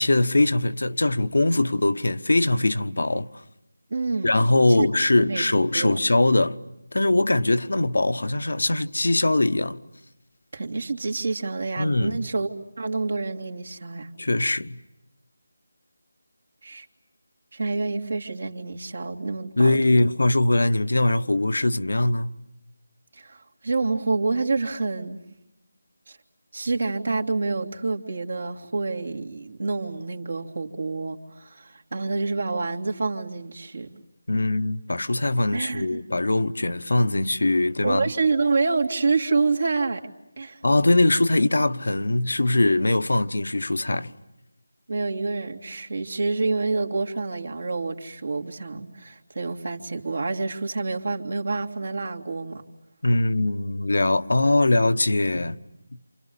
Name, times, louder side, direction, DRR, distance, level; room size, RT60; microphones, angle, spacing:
voice 1, 0.0-3.3 4.2-6.6 6.9-9.8 11.8-12.2 14.2-14.8 19.6-22.3 34.3-38.1 40.6-44.1 53.0-55.6, left 2 dB, 75° left, 1.2 m, -21 dB
voice 2, 3.9-4.3 4.8-4.9 5.2-5.5 5.7-6.0 10.5-12.5 12.8-14.1 16.6-16.9 17.5-20.1 23.1-25.2 26.1-26.2 26.5-33.9 35.5-36.0 37.8-40.0 40.4-40.6 44.9-52.6, right 3 dB, 65° right, 3.1 m, -27 dB
28.5 x 28.5 x 7.2 m
figure-of-eight pair, 165°, 0 cm